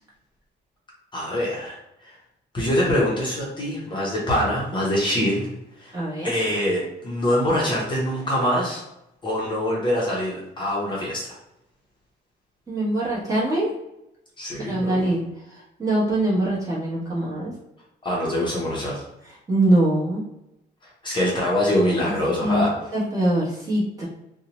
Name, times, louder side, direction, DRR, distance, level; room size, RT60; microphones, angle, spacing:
voice 1, 1.1-2.2 2.5-5.5 5.8-5.9 6.2-8.8 9.2-11.4 14.4-15.1 18.0-19.0 21.0-22.7, left 1 dB, 25° left, -5 dB, 0.7 m, -24 dB
voice 2, 5.9-6.3 12.7-13.7 14.5-15.2 15.8-17.5 19.5-20.3 22.0-22.1 22.4-22.6 22.9-24.1, right 1 dB, 20° right, -7 dB, 0.9 m, -23 dB
2.7 x 2.1 x 2.8 m, 0.87 s
cardioid pair, 150°, 18 cm